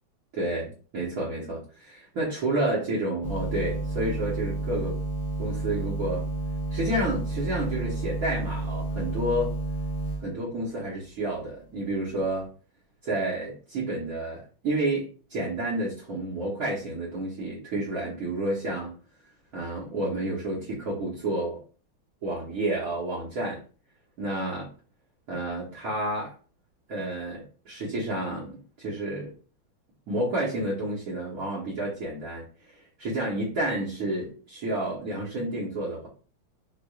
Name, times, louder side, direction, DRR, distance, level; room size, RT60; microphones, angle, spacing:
voice 1, 0.3-5.0 5.4-6.3 6.7-9.6 10.2-12.5 13.0-19.0 19.5-21.6 22.2-23.6 24.2-24.7 25.3-26.3 26.9-29.3 30.1-32.4 32.7-36.1, right 1 dB, 50° right, -6 dB, 1.3 m, -30 dB
sound 1, 3.2-10.2, right 2 dB, 50° left, 0.7 m, -31 dB
4.6 x 2.4 x 2.3 m, 0.38 s
omnidirectional pair, 2.3 m